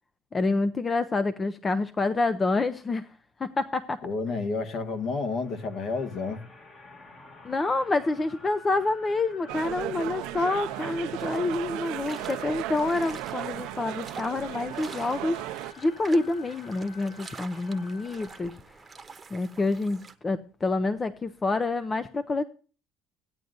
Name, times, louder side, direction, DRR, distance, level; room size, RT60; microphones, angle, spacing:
voice 1, 0.3-3.1 3.4-4.0 7.4-18.6 19.3-22.4, left 3 dB, 25° left, 0.5 m, -27 dB
voice 2, 4.0-6.4, left 4 dB, 55° left, 1.7 m, -30 dB
sound 1, 4.8-18.4, left 4 dB, 40° left, 2.2 m, -51 dB
sound 2, 9.5-15.7, right 16 dB, 80° right, 0.6 m, -35 dB
sound 3, 11.2-20.1, right 4 dB, 20° right, 1.0 m, -46 dB
16.0 x 9.3 x 2.6 m
cardioid pair, 120°, 0 cm